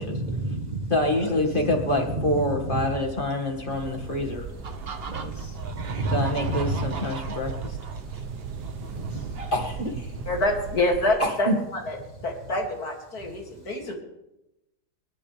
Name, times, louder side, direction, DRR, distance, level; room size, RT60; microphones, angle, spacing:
voice 1, 0.0-0.9 1.2-1.4 2.0-2.9 5.1-7.0 8.6-9.4, right 2 dB, 30° right, 2 dB, 1.3 m, -31 dB
voice 2, 0.9-4.4 6.1-7.8 9.5-10.1 11.2-11.6, left 1 dB, 30° left, 2 dB, 2.3 m, -26 dB
sound 1, 1.8-10.4, equal, 10° right, 1.1 m, -43 dB
sound 2, 3.7-11.2, right 8 dB, 80° right, 1.4 m, -38 dB
sound 3, 4.6-9.9, right 5 dB, 45° right, 1.0 m, -39 dB
voice 3, 10.3-14.0, left 1 dB, 65° left, 0 dB, 3.3 m, -27 dB
28.5 x 11.5 x 3.5 m, 0.93 s
omnidirectional pair, 1.8 m